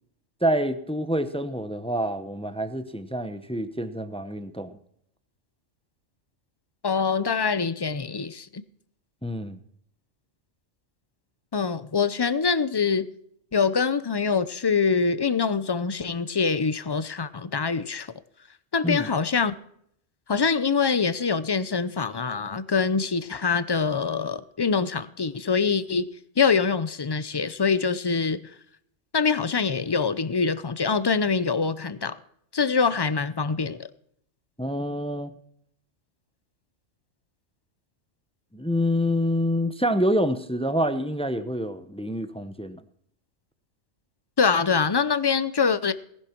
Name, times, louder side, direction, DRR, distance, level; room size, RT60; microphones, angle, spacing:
voice 1, 0.4-4.7 9.2-9.6 18.8-19.1 34.6-35.3 38.5-42.8, equal, 5° left, 0.7 m, -27 dB
voice 2, 6.8-8.6 11.5-13.1 13.5-18.1 18.7-19.6 20.3-26.1 26.4-28.4 29.1-32.2 32.5-33.9 44.4-45.9, left 5 dB, 35° left, 0.4 m, -24 dB
19.0 x 11.0 x 4.5 m
omnidirectional pair, 1.3 m